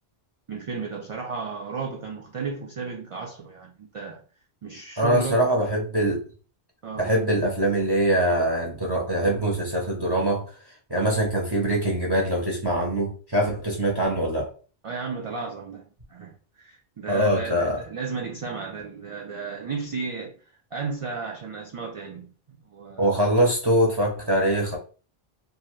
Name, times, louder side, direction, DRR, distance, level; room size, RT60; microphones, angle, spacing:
voice 1, 0.5-4.2 4.6-5.5 6.8-7.1 14.8-20.4 20.7-23.2, right 5 dB, 50° right, 0.4 m, -34 dB
voice 2, 5.0-6.2 7.0-10.4 10.9-14.5 17.1-17.8 23.0-24.8, right 1 dB, 25° right, 0.7 m, -23 dB
2.7 x 2.4 x 3.1 m
omnidirectional pair, 1.1 m